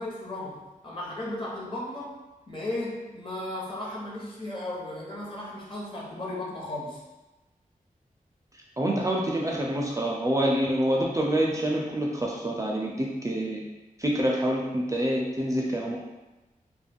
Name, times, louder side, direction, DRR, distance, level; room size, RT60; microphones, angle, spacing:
voice 1, 0.0-2.2 2.5-7.0, left 1 dB, 35° left, -4 dB, 0.8 m, -35 dB
voice 2, 8.8-13.6 14.0-16.0, right 1 dB, 20° right, -2 dB, 0.4 m, -26 dB
2.2 x 2.2 x 3.4 m, 1.1 s
wide cardioid pair, 70°, 14 cm